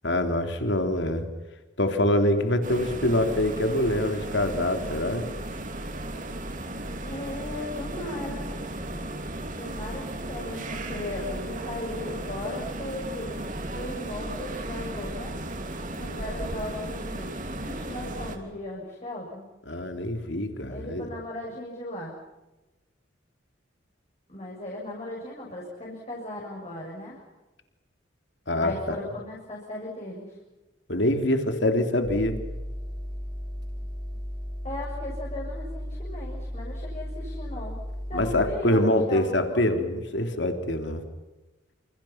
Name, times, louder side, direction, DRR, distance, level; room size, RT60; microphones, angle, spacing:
voice 1, 0.0-1.3 1.8-5.3 19.7-21.1 28.5-28.9 30.9-32.3 38.1-41.0, left 1 dB, 65° left, 6 dB, 3.3 m, -25 dB
sound 1, 2.6-18.4, right 1 dB, 45° right, 3.2 m, -35 dB
voice 2, 7.1-8.5 9.6-15.3 16.0-19.5 20.7-22.1 24.3-27.2 28.6-30.3 34.6-37.8 38.1-39.6, left 1 dB, 35° left, -4 dB, 7.1 m, -37 dB
sound 2, 32.0-38.5, equal, 25° right, 6.3 m, -35 dB
29.0 x 28.5 x 5.9 m, 1.1 s
head